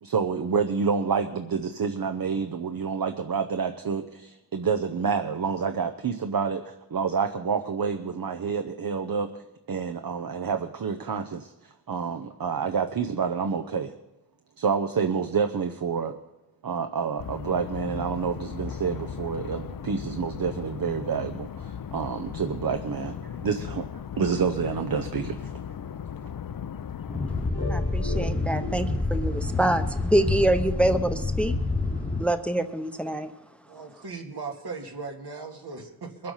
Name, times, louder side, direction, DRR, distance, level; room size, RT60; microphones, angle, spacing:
voice 1, 0.0-9.3 9.7-13.9 14.6-16.1 16.6-23.9 24.2-25.5, right 6 dB, 60° right, 7 dB, 0.8 m, -28 dB
sound 1, 17.2-27.5, left 8 dB, 60° left, 0.6 m, -37 dB
sound 2, 27.1-32.3, left 2 dB, 20° left, 1.0 m, -28 dB
sound 3, 27.5-32.1, left 2 dB, 80° left, 2.3 m, -41 dB
voice 2, 27.7-31.6 32.2-33.3, right 1 dB, 5° left, 9 dB, 0.7 m, -25 dB
voice 3, 33.7-36.3, right 4 dB, 75° right, 1 dB, 2.2 m, -38 dB
22.0 x 7.7 x 5.7 m, 0.95 s
wide cardioid pair, 80°, 39 cm